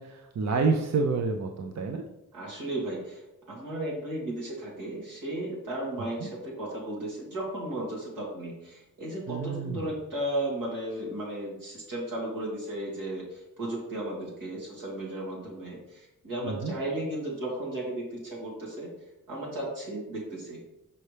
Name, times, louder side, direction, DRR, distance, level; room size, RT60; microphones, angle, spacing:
voice 1, 0.0-2.0 9.3-9.9 16.4-16.7, right 4 dB, 55° right, 4 dB, 0.5 m, -28 dB
voice 2, 2.3-3.2 3.5-18.9 19.3-20.6, right 1 dB, 85° right, -4 dB, 2.3 m, -35 dB
5.6 x 5.4 x 3.3 m, 0.92 s
wide cardioid pair, 125°, 32 cm